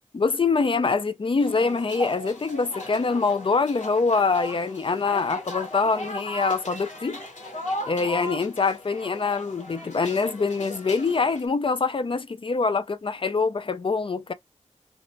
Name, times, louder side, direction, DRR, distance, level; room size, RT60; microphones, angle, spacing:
voice 1, 0.1-7.2 7.9-14.3, left 4 dB, 45° left, 0.4 m, -24 dB
sound 1, 1.4-11.5, left 1 dB, 75° left, 1.1 m, -37 dB
4.0 x 2.1 x 2.5 m
wide cardioid pair, 70°, 13 cm